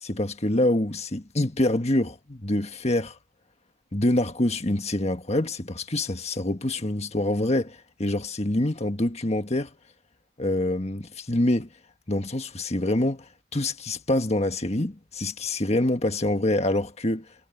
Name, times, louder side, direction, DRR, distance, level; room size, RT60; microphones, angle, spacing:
voice 1, 0.0-3.2 3.9-9.7 10.4-11.7 12.1-13.2 13.5-17.3, left 1 dB, 30° left, 1.5 m, -26 dB
head